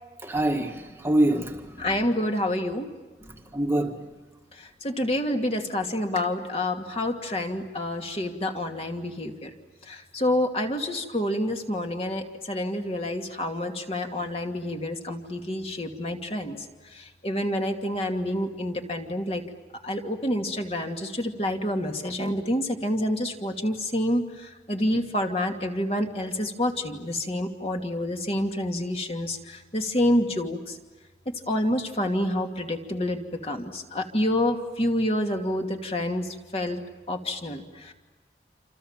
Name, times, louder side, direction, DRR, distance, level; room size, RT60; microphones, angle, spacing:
voice 1, 0.2-1.9 3.2-4.0, right 1 dB, 15° right, 3 dB, 1.6 m, -25 dB
voice 2, 1.8-2.9 4.5-9.5 9.8-19.4 19.8-30.8 31.3-36.8 37.1-37.9, left 1 dB, 35° left, 3 dB, 2.5 m, -28 dB
28.0 x 28.0 x 7.4 m, 1.3 s
head